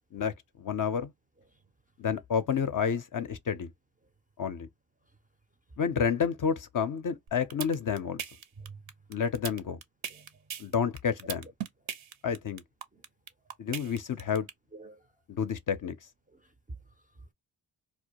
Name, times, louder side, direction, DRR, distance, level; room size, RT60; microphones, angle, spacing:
voice 1, 0.6-1.1 2.0-3.7 4.4-4.7 5.8-8.2 9.1-9.8 10.6-11.5 12.2-12.6 13.6-14.5 15.3-16.0, left 7 dB, 40° left, 0.4 m, -30 dB
sound 1, 7.3-14.5, right 9 dB, 70° right, 0.6 m, -38 dB
voice 2, 10.1-10.5 12.9-13.0 13.4-13.6 14.7-15.1 16.3-17.3, right 3 dB, 20° right, 0.4 m, -49 dB
2.1 x 2.1 x 2.8 m
supercardioid pair, 45°, 50 cm